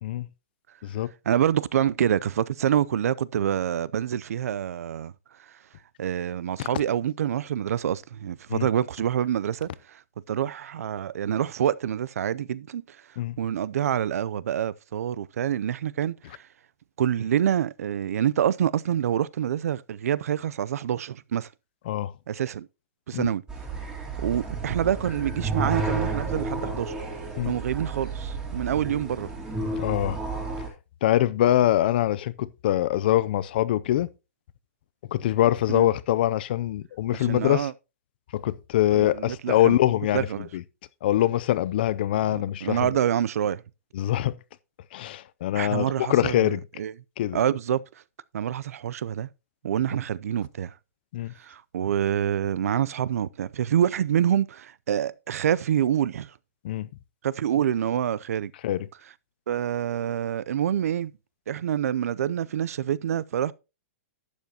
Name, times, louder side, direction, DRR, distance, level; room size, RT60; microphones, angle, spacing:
voice 1, 1.3-5.1 6.0-10.0 10.3-13.0 13.4-16.5 17.0-21.5 22.3-22.7 23.1-23.4 24.2-27.0 27.4-29.3 35.7-35.9 37.1-37.7 38.9-39.8 40.1-40.5 42.3-43.6 45.5-46.9 47.3-47.8 48.3-49.3 49.6-50.7 51.4-56.3 57.2-58.5 59.5-61.1 61.5-63.5, right 10 dB, 75° right, 0.5 m, -26 dB
sound 1, 23.5-30.7, right 3 dB, 10° right, 2.1 m, -31 dB
voice 2, 29.8-30.2 31.0-34.1 35.1-37.7 38.3-40.3 40.5-40.6 41.0-42.9 43.9-44.4 44.9-46.6 47.2-47.4 51.1-51.3 56.6-56.9 58.6-58.9, left 13 dB, 40° left, 0.4 m, -24 dB
11.5 x 8.2 x 2.8 m
hypercardioid pair, 175°, 8 cm